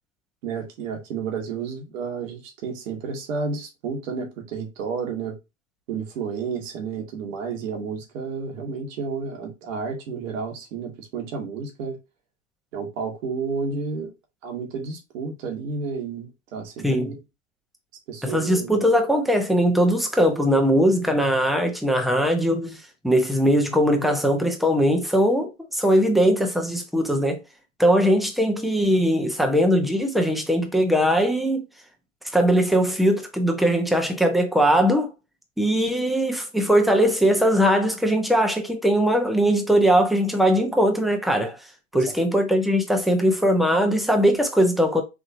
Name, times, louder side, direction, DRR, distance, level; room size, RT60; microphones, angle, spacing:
voice 1, 0.4-5.4 5.9-12.0 12.7-14.1 14.4-17.1 18.1-18.8 41.9-42.0, right 5 dB, 75° right, 1.4 m, -31 dB
voice 2, 16.8-17.1 18.2-22.8 23.0-27.4 27.8-31.7 32.3-35.1 35.6-41.6 41.9-45.0, equal, ahead, 1.0 m, -20 dB
3.6 x 2.9 x 2.7 m
hypercardioid pair, 85°, 39 cm